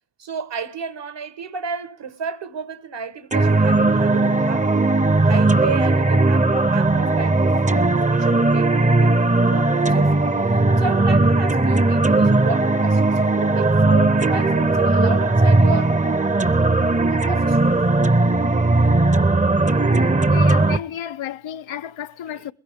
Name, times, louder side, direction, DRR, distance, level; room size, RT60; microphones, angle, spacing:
voice 1, 0.2-4.8 5.2-16.2 17.1-17.8 22.3-22.4, right 5 dB, 65° right, 1.3 m, -32 dB
sound 1, 3.3-20.8, right 2 dB, 15° right, 0.6 m, -18 dB
voice 2, 20.3-22.5, left 10 dB, 85° left, 0.6 m, -32 dB
21.5 x 16.0 x 3.5 m
cardioid pair, 50°, 45 cm